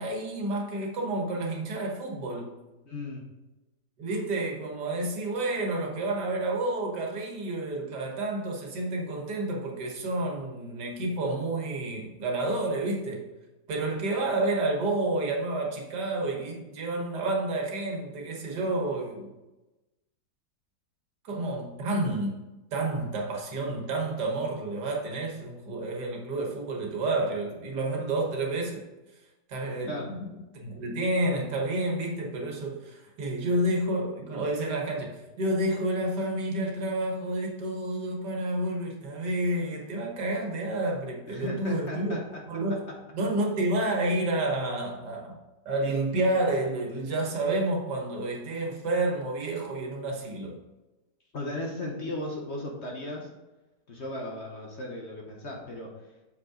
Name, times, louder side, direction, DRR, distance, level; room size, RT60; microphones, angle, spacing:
voice 1, 0.0-2.6 4.0-13.2 13.7-19.3 21.2-22.4 22.7-28.8 29.5-42.2 42.5-42.8 43.1-45.4 45.7-50.6, right 2 dB, 75° right, 0 dB, 1.9 m, -30 dB
voice 2, 2.8-3.3 29.9-30.1 41.3-42.4 42.9-43.0 51.3-53.3 53.9-56.0, left 1 dB, 45° left, 0 dB, 1.1 m, -36 dB
7.0 x 5.3 x 3.8 m, 1.1 s
omnidirectional pair, 1.8 m